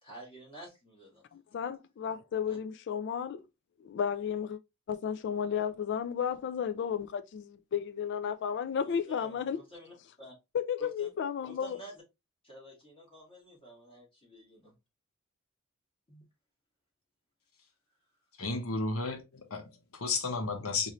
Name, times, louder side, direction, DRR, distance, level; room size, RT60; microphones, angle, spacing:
voice 1, 0.0-1.3 2.4-2.6 8.8-10.4 11.0-11.1 11.5-12.0 12.4-14.7 16.1-16.2, right 1 dB, 25° left, 2.0 m, -50 dB
voice 2, 1.3-3.4 3.8-4.6 4.9-9.6 10.5-11.8, left 7 dB, 55° left, 0.3 m, -33 dB
voice 3, 18.4-19.2 19.5-20.9, left 3 dB, 85° left, 1.0 m, -33 dB
3.9 x 2.6 x 3.1 m
head